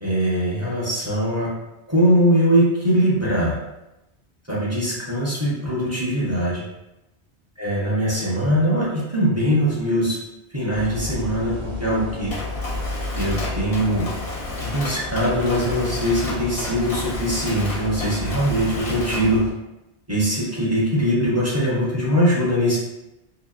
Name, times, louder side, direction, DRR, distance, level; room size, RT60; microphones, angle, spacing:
voice 1, 0.0-1.5 1.9-3.6 4.5-6.6 7.6-10.2 10.5-12.3 13.2-14.1 14.6-19.4 20.1-22.8, equal, 20° right, -8 dB, 0.5 m, -21 dB
sound 1, 10.7-19.5, left 3 dB, 60° right, 0.8 m, -32 dB
Mechanisms, 12.3-19.4, left 1 dB, 45° left, 0.5 m, -33 dB
2.8 x 2.1 x 2.3 m, 0.93 s
omnidirectional pair, 1.1 m